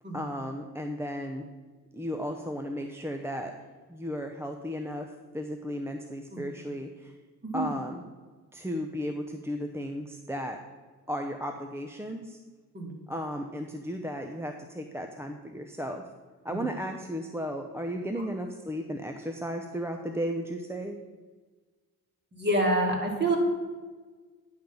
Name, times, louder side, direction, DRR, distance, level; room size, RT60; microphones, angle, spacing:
voice 1, 0.1-1.5 1.9-3.5 3.9-7.1 7.5-8.0 8.5-10.6 11.1-12.4 13.1-16.0 16.4-21.0, equal, 5° right, 4 dB, 0.6 m, -35 dB
voice 2, 22.3-23.4, right 1 dB, 25° right, 1 dB, 2.3 m, -27 dB
10.5 x 3.9 x 7.0 m, 1.4 s
cardioid pair, 80°, 38 cm